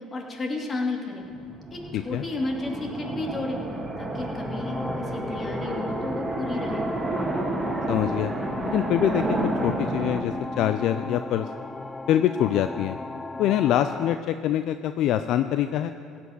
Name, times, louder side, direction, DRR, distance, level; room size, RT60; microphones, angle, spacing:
voice 1, 0.1-1.2 1.7-3.6 4.0-6.8, left 2 dB, 35° left, 0 dB, 2.7 m, -32 dB
sound 1, 1.3-10.2, right 2 dB, 20° right, 2.2 m, -30 dB
voice 2, 1.9-2.2 7.9-8.3 8.6-11.5 12.1-13.0 13.4-15.9, left 11 dB, 65° left, 10 dB, 0.4 m, -24 dB
sound 2, 4.1-14.1, left 2 dB, 15° left, 0.6 m, -36 dB
16.5 x 6.0 x 9.4 m, 2.4 s
supercardioid pair, 75°, 0 cm